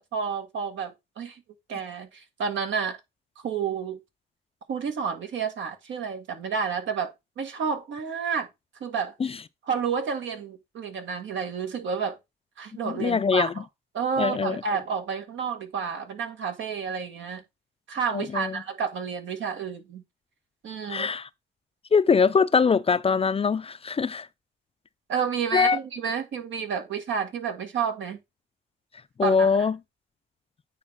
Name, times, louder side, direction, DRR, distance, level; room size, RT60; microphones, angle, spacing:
voice 1, 0.0-1.4 1.7-3.0 3.4-4.0 4.7-8.5 8.8-9.1 9.7-12.2 12.6-13.6 13.9-17.4 17.9-20.0 20.6-21.1 25.1-28.2 29.2-29.5, right 6 dB, 70° right, 1.9 m, -30 dB
voice 2, 12.8-13.5 14.2-14.6 18.1-18.6 20.9-21.3 21.9-24.3 25.5-25.8 29.2-29.8, left 5 dB, 30° left, 0.5 m, -22 dB
9.0 x 3.4 x 5.8 m
cardioid pair, 90°, 20 cm